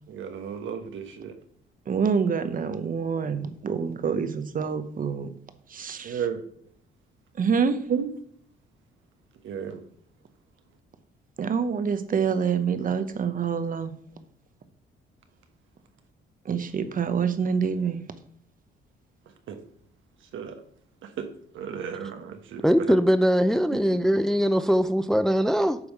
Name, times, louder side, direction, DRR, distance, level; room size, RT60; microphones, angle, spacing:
voice 1, 0.1-1.3 6.0-6.4 7.9-8.1 9.4-9.8 19.5-19.6 20.3-20.6 21.2-21.3 21.5-23.0 23.7-24.1, right 7 dB, 75° right, 7 dB, 1.2 m, -33 dB
voice 2, 1.9-5.3 5.7-6.2 7.4-7.8 11.4-13.9 16.4-18.0, right 6 dB, 45° right, 11 dB, 1.0 m, -26 dB
voice 3, 22.6-25.8, equal, ahead, 12 dB, 0.4 m, -21 dB
9.7 x 3.5 x 6.6 m, 0.63 s
cardioid pair, 90°, 20 cm